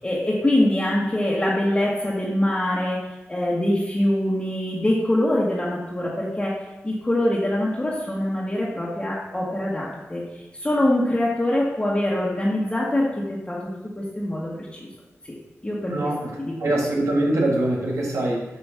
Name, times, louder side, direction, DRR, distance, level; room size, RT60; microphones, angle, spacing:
voice 1, 0.0-3.0 3.3-6.5 6.8-10.2 10.6-13.7 14.0-14.9 15.6-16.1 16.4-16.8, left 1 dB, 20° left, -7 dB, 1.5 m, -24 dB
voice 2, 15.9-16.3 16.6-18.4, right 1 dB, 80° right, -2 dB, 1.8 m, -23 dB
8.1 x 3.0 x 5.7 m, 1.0 s
cardioid pair, 60°, 5 cm